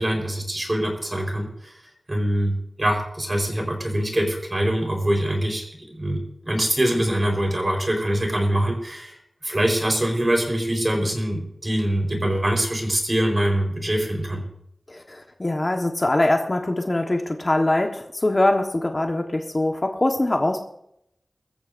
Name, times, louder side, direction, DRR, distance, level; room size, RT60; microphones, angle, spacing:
voice 1, 0.0-1.8 2.1-9.2 9.4-14.4, right 1 dB, 30° right, 1 dB, 4.4 m, -24 dB
voice 2, 14.9-20.6, left 1 dB, 35° left, 3 dB, 1.3 m, -23 dB
22.0 x 14.0 x 2.7 m, 0.76 s
wide cardioid pair, 75°, 0 cm